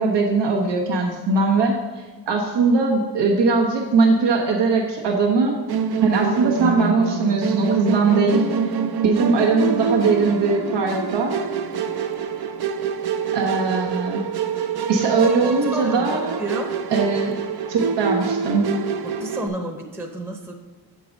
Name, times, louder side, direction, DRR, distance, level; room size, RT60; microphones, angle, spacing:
voice 1, 0.0-5.6 6.0-8.4 9.0-11.3 13.3-14.2 14.9-16.4 16.9-17.3 17.7-18.6, right 4 dB, 90° right, 0 dB, 1.0 m, -20 dB
Musical instrument, 5.7-19.5, right 6 dB, 65° right, 0.6 m, -26 dB
voice 2, 15.7-16.1 16.4-16.8 19.0-20.5, right 1 dB, 5° right, 2 dB, 0.7 m, -30 dB
7.0 x 4.5 x 5.2 m, 1.3 s
cardioid pair, 85°, 41 cm